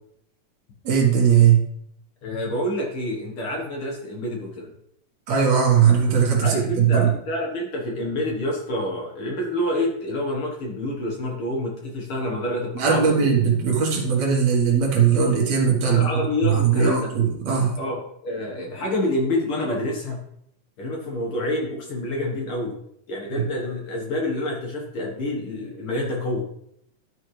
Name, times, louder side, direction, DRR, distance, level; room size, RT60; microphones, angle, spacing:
voice 1, 0.9-1.6 5.3-7.1 12.8-16.1 16.5-17.8 23.3-23.4, right 7 dB, 70° right, 0 dB, 2.8 m, -19 dB
voice 2, 2.2-4.7 6.4-13.3 15.9-17.1 17.8-20.2 20.8-22.7 23.1-26.4, left 1 dB, 55° left, -1 dB, 2.0 m, -27 dB
12.0 x 5.5 x 3.2 m, 0.73 s
omnidirectional pair, 3.4 m